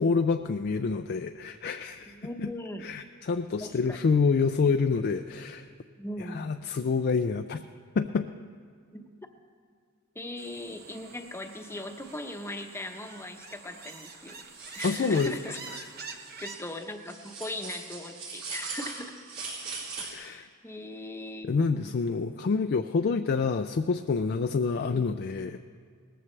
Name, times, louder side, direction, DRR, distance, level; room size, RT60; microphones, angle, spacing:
voice 1, 0.0-2.2 2.4-2.5 2.8-5.7 6.3-7.6 8.0-8.3 14.8-15.3 20.0-20.5 21.5-25.6, left 4 dB, 50° left, 7 dB, 0.4 m, -27 dB
voice 2, 2.1-2.9 3.6-4.0 6.0-6.5 8.9-9.1 10.1-15.6 16.0-19.2 20.0-21.6 21.8-21.9 24.9-25.1, left 1 dB, 10° left, 5 dB, 0.9 m, -39 dB
sound 1, 10.4-16.6, right 4 dB, 50° right, 1.0 m, -46 dB
sound 2, 14.5-15.3 15.7-15.8 16.2-20.1, right 4 dB, 80° right, 3.7 m, -40 dB
19.0 x 14.0 x 3.3 m, 2.1 s
head